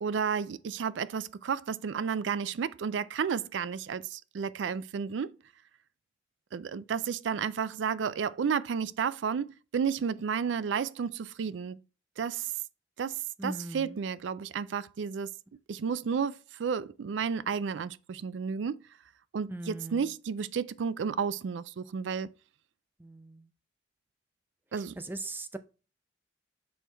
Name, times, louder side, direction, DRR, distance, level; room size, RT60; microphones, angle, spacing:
voice 1, 0.0-5.3 6.5-11.8 12.2-12.5 13.0-15.3 15.7-18.8 19.3-22.3 24.7-25.0, right 6 dB, 90° right, 0.4 m, -32 dB
voice 2, 13.4-14.0 19.5-20.1 23.0-23.5 25.0-25.6, right 2 dB, 10° right, 0.5 m, -39 dB
6.3 x 4.5 x 3.3 m
head